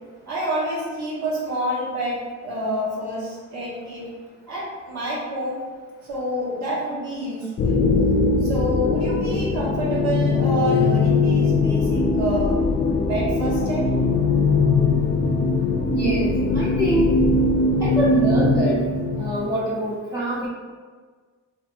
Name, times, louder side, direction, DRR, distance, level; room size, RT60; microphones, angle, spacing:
voice 1, 0.3-4.1 4.5-5.6 6.1-7.8 8.4-12.6 13.1-13.9, right 1 dB, 70° right, -8 dB, 1.1 m, -28 dB
sound 1, 7.6-19.5, left 3 dB, 40° left, 0.4 m, -21 dB
voice 2, 15.9-17.2 17.8-18.8 19.2-20.5, right 1 dB, 10° right, -7 dB, 0.5 m, -24 dB
3.2 x 2.7 x 2.4 m, 1.5 s
cardioid pair, 90°, 30 cm